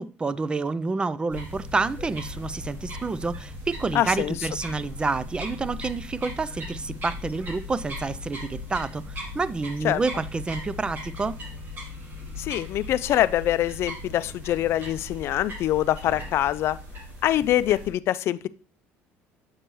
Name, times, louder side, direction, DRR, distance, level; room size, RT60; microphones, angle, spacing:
voice 1, 0.0-11.4, right 3 dB, 20° right, 0.4 m, -29 dB
sound 1, 1.3-17.9, left 1 dB, 40° right, 2.9 m, -38 dB
voice 2, 3.9-4.4 9.8-10.0 12.4-16.8 17.2-18.5, left 13 dB, 55° left, 0.4 m, -24 dB
7.9 x 6.0 x 3.1 m
cardioid pair, 120°, 5 cm